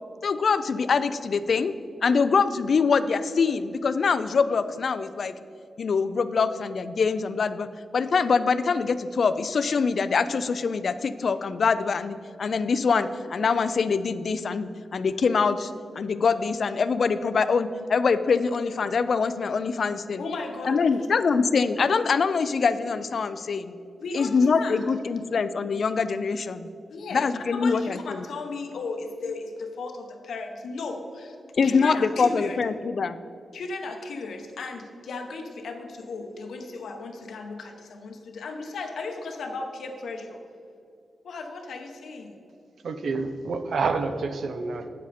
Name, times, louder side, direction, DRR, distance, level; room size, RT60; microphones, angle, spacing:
voice 1, 0.2-1.7 2.0-5.3 5.8-7.7 7.9-20.2 20.6-23.7 24.1-26.7 27.1-28.2 31.6-33.2, left 5 dB, 55° left, 13 dB, 0.4 m, -24 dB
voice 2, 20.2-21.3 24.0-24.8 26.9-31.4 31.6-32.6 33.5-40.4 41.2-42.4, left 3 dB, 85° left, 4 dB, 1.0 m, -36 dB
voice 3, 42.8-44.9, right 4 dB, 70° right, 9 dB, 0.6 m, -28 dB
8.9 x 7.3 x 4.2 m, 2.6 s
wide cardioid pair, 130°, 0 cm